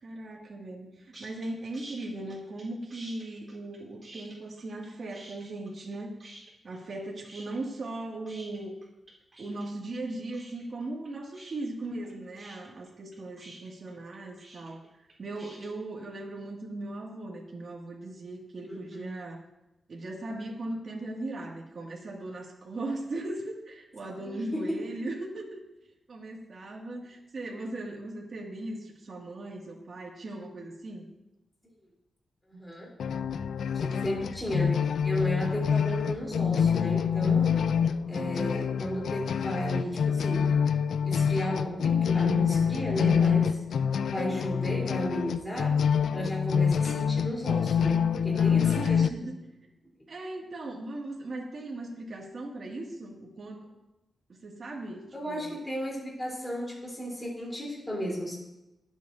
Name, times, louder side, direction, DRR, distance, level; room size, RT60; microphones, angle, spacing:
voice 1, 0.0-6.2 6.6-8.8 9.4-14.8 15.2-19.4 19.9-25.6 26.1-31.1 33.9-34.3 44.3-44.4 48.3-49.4 50.1-53.7 54.4-55.6, right 2 dB, 50° right, -2 dB, 2.2 m, -38 dB
sound 1, 1.1-1.5 1.7-2.6 2.9-4.9 5.1-5.9 6.2-7.0 7.2-15.7, right 2 dB, 30° right, 3.8 m, -49 dB
voice 2, 18.7-19.1 24.2-24.8 32.5-32.9 33.7-34.8 35.0-37.6 38.1-40.5 41.0-43.6 44.1-49.3 55.1-58.3, equal, 10° left, -3 dB, 3.6 m, -34 dB
sound 2, 33.0-49.1, left 7 dB, 85° left, 0.4 m, -26 dB
22.5 x 8.3 x 2.7 m, 0.94 s
wide cardioid pair, 135°, 0 cm